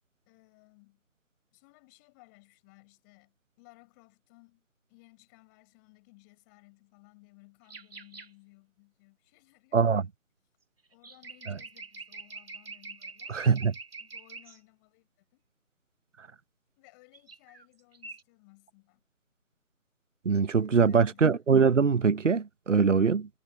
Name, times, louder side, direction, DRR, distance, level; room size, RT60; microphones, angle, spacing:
voice 1, 0.3-1.0 1.5-10.1 10.9-13.5 14.0-15.4 16.8-19.0 20.5-21.6, left 28 dB, 15° left, 7.2 m, -60 dB
sound 1, 7.7-8.3 10.9-14.6 17.1-17.7 17.9-18.2, right 4 dB, 45° right, 2.7 m, -45 dB
voice 2, 9.7-10.0 13.3-13.7 20.2-23.3, right 5 dB, 60° right, 1.0 m, -23 dB
figure-of-eight pair, 155°, 41 cm